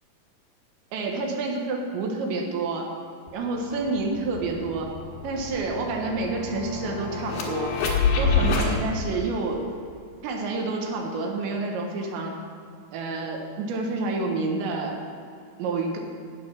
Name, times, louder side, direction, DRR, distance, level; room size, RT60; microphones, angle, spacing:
voice 1, 0.9-2.9 3.3-4.9 5.2-7.8 8.2-9.7 10.2-12.4 12.9-15.0 15.6-16.0, right 3 dB, 80° right, 2 dB, 3.5 m, -28 dB
sound 1, 3.3-3.4 3.7-8.7, left 4 dB, 70° left, 3.3 m, -27 dB
13.5 x 8.5 x 5.8 m, 2.5 s
omnidirectional pair, 5.2 m